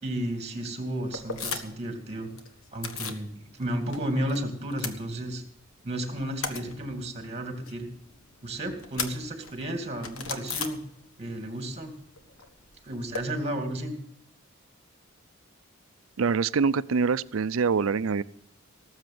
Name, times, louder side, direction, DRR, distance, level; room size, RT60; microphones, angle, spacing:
voice 1, 0.0-2.3 2.7-5.4 5.8-7.9 8.4-10.8 11.2-11.9 12.8-13.9, right 1 dB, 30° right, 6 dB, 2.5 m, -33 dB
sound 1, 1.1-1.9 2.2-3.3 3.6-4.4 4.6-5.7 6.0-11.4 11.6-13.2, left 5 dB, 85° left, 1.5 m, -37 dB
voice 2, 16.2-18.2, right 5 dB, 75° right, 16 dB, 0.5 m, -25 dB
18.5 x 7.3 x 7.7 m, 0.67 s
head